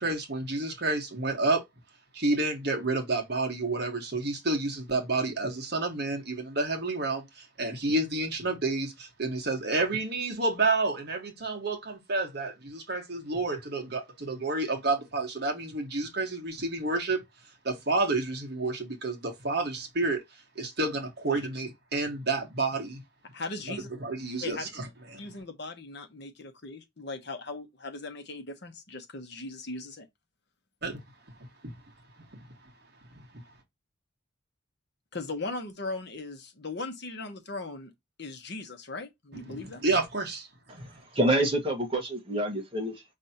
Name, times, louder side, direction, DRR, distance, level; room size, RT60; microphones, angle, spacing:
voice 1, 0.0-1.6 2.1-17.2 17.6-20.2 20.5-23.0 24.0-24.8 25.1-25.2 30.8-31.0 39.5-40.8, right 3 dB, 50° right, 1.4 m, -30 dB
voice 2, 23.3-23.9 24.4-24.7 25.2-30.1 35.1-37.9 38.2-39.8, left 3 dB, 55° left, 1.0 m, -38 dB
voice 3, 40.7-43.0, right 1 dB, 25° right, 1.3 m, -28 dB
5.4 x 3.2 x 2.8 m
head